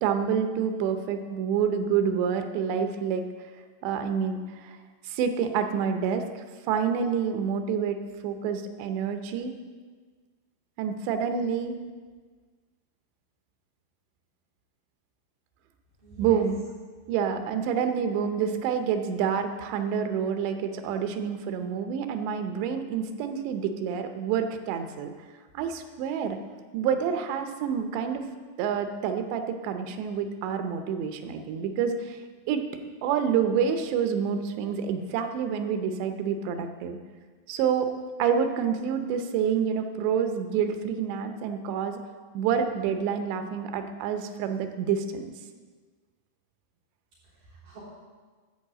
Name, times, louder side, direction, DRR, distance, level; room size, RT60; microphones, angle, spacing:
voice 1, 0.0-3.2 3.8-4.8 5.1-9.5 10.8-11.8 16.2-16.6 17.1-25.1 25.5-26.4 26.7-28.3 28.6-32.2 32.5-32.6 33.0-37.0 37.5-37.9 38.2-42.0 42.3-45.3, right 7 dB, 85° right, 7 dB, 3.0 m, -28 dB
voice 2, 16.0-16.4 17.4-17.7 47.2-47.8, right 4 dB, 55° right, -11 dB, 5.1 m, -45 dB
14.0 x 4.8 x 7.4 m, 1.5 s
omnidirectional pair, 4.9 m